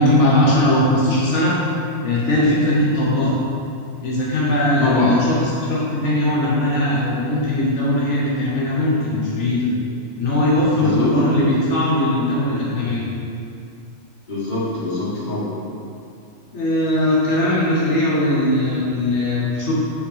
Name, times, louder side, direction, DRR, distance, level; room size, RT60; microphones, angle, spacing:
voice 1, 0.0-1.7 2.0-3.4 4.0-5.4 5.7-9.7 10.2-13.0 16.5-19.7, left 1 dB, 70° left, -6 dB, 1.3 m, -19 dB
voice 2, 4.8-5.2 10.7-11.1 14.3-15.5, left 2 dB, 40° left, -8 dB, 1.5 m, -23 dB
4.9 x 4.1 x 5.5 m, 2.5 s
omnidirectional pair, 1.2 m